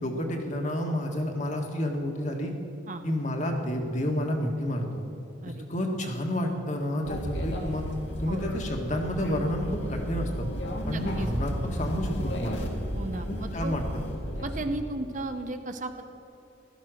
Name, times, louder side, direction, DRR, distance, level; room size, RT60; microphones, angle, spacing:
voice 1, 0.0-2.5 3.0-5.0 5.7-7.8 8.2-10.5 10.9-12.6 13.3-13.8, left 1 dB, 40° left, 2 dB, 1.8 m, -30 dB
sound 1, 7.0-14.7, equal, 70° left, 2.1 m, -33 dB
voice 2, 10.8-11.3 13.0-13.7 14.4-16.0, right 2 dB, 40° right, 7 dB, 0.9 m, -35 dB
16.0 x 13.0 x 6.4 m, 3.0 s
head